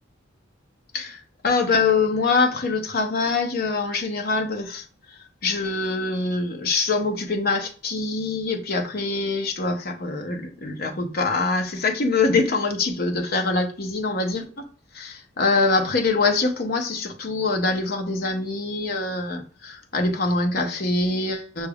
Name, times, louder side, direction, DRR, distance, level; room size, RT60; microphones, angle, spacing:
voice 1, 0.9-4.8 5.4-14.6 14.9-21.7, left 3 dB, 50° left, 0.7 m, -24 dB
5.6 x 2.3 x 3.4 m
head